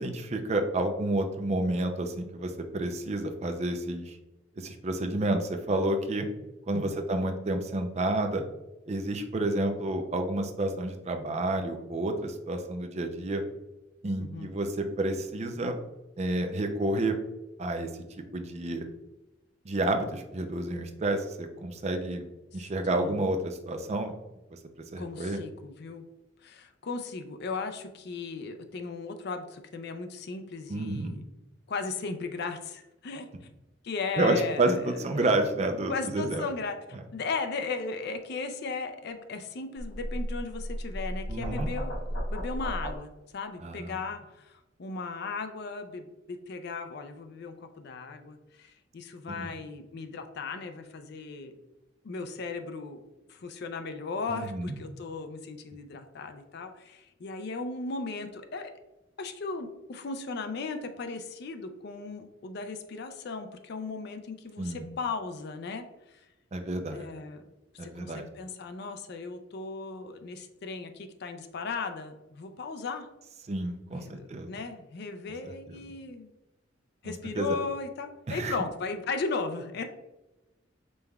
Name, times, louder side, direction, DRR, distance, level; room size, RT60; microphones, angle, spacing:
voice 1, 0.0-4.2 4.5-6.3 6.7-8.4 8.9-13.4 14.0-15.8 16.2-17.2 17.6-17.9 18.3-18.9 19.6-22.3 22.5-24.1 24.5-24.6 24.9-25.4 30.7-31.2 34.2-36.5 41.3-41.7 43.6-44.0 49.3-49.5 54.3-54.8 64.6-64.8 66.5-67.1 67.8-68.3 73.5-74.5 75.4-75.8 77.0-77.6 78.3-78.6, right 2 dB, 35° right, 5 dB, 0.5 m, -30 dB
voice 2, 22.6-23.2 25.0-26.0 26.4-31.2 31.7-33.3 33.8-35.0 35.9-42.0 42.3-51.5 52.0-53.0 53.3-58.7 59.2-65.9 66.9-67.4 67.8-73.1 73.9-76.3 77.0-79.8, left 4 dB, 55° left, 7 dB, 0.4 m, -36 dB
sound 1, 39.8-43.0, equal, 80° left, 0.8 m, -34 dB
5.3 x 3.3 x 2.3 m, 1.0 s
head